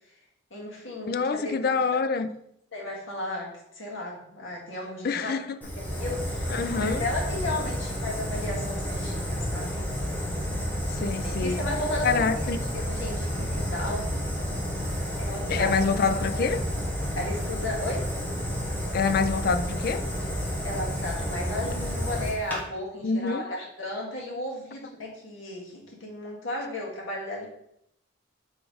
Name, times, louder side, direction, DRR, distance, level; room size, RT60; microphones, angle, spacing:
voice 1, 0.5-1.5 1.9-2.0 2.7-5.3 5.8-9.9 11.4-14.1 15.2-15.7 16.0-16.5 17.2-18.0 20.6-27.5, left 1 dB, 70° left, -3 dB, 1.9 m, -34 dB
voice 2, 1.1-2.3 5.0-5.6 6.5-7.0 10.9-11.6 12.0-12.6 15.5-16.6 18.9-20.0 23.0-23.5, left 5 dB, 50° left, 11 dB, 0.4 m, -26 dB
Fire, 5.6-22.6, equal, 10° left, 1.0 m, -30 dB
4.8 x 4.0 x 4.9 m, 0.76 s
head